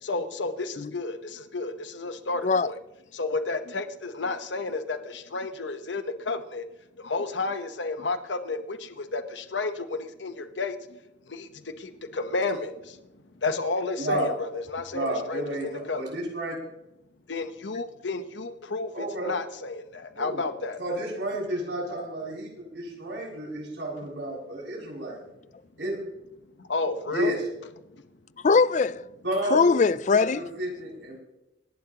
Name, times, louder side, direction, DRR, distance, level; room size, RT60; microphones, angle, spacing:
voice 1, 0.0-2.8 3.1-6.6 7.0-11.0 11.3-13.0 13.4-16.0 17.3-20.8 26.6-27.3, left 3 dB, 90° left, 1.0 m, -32 dB
voice 2, 14.0-14.3 14.9-16.5 18.9-19.3 20.1-20.4 20.8-22.5 22.7-25.2 25.8-26.0 27.1-27.4 29.2-29.7 30.1-31.2, right 1 dB, 90° right, 6.8 m, -31 dB
voice 3, 28.4-29.1 29.5-30.5, left 4 dB, 45° left, 0.4 m, -21 dB
26.5 x 11.5 x 2.9 m
head